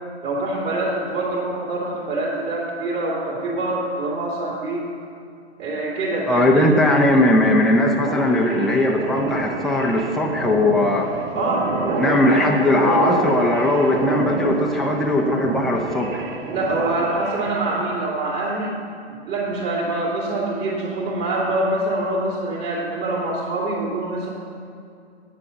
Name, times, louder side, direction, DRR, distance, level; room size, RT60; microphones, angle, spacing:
voice 1, 0.2-4.8 5.6-6.7 11.3-12.5 16.4-18.8 19.2-24.3, right 2 dB, 30° right, -7 dB, 2.5 m, -25 dB
voice 2, 6.3-11.1 12.0-16.2, left 1 dB, ahead, -1 dB, 0.7 m, -19 dB
sound 1, 8.0-18.0, right 4 dB, 55° right, 1.6 m, -28 dB
9.5 x 7.7 x 7.1 m, 2.5 s
hypercardioid pair, 130°, 34 cm